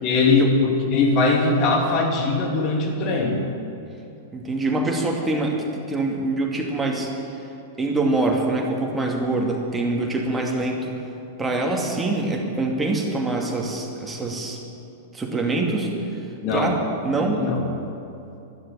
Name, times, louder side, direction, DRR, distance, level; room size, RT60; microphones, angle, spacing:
voice 1, 0.0-3.5 16.4-16.8 17.2-17.6, left 3 dB, 35° left, 2 dB, 2.5 m, -21 dB
voice 2, 4.3-7.1 7.8-10.9 11.4-14.6 15.1-15.9 16.5-17.4, right 2 dB, 10° right, 0 dB, 2.5 m, -24 dB
12.5 x 12.5 x 8.8 m, 2.8 s
figure-of-eight pair, 95°, 0 cm